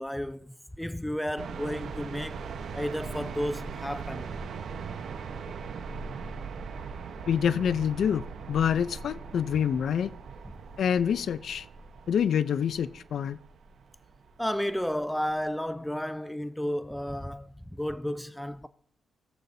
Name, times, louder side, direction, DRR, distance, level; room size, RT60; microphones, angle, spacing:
voice 1, 0.0-2.4 2.7-4.3 14.4-18.7, equal, 5° left, 0.4 m, -32 dB
sound 1, 1.4-15.3, right 5 dB, 75° right, 0.9 m, -40 dB
voice 2, 7.3-8.2 8.5-10.1 10.8-11.7 12.1-13.4, left 8 dB, 75° left, 0.4 m, -26 dB
17.5 x 8.2 x 2.7 m
cardioid pair, 85°, 0 cm